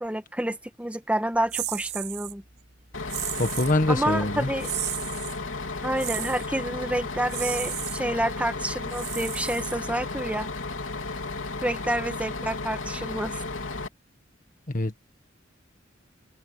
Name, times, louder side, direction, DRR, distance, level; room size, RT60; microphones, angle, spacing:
voice 1, 0.0-2.4 3.9-4.7 5.8-10.5 11.6-13.4, right 1 dB, 5° right, 1.3 m, -29 dB
sound 1, 1.5-2.3 3.1-3.8 4.6-5.4 6.0-6.5 7.3-8.0 8.9-10.1, right 14 dB, 60° right, 7.4 m, -34 dB
Bus, 2.9-13.9, left 3 dB, 90° left, 3.4 m, -34 dB
voice 2, 3.4-4.5 14.7-15.0, left 2 dB, 45° left, 1.5 m, -24 dB
head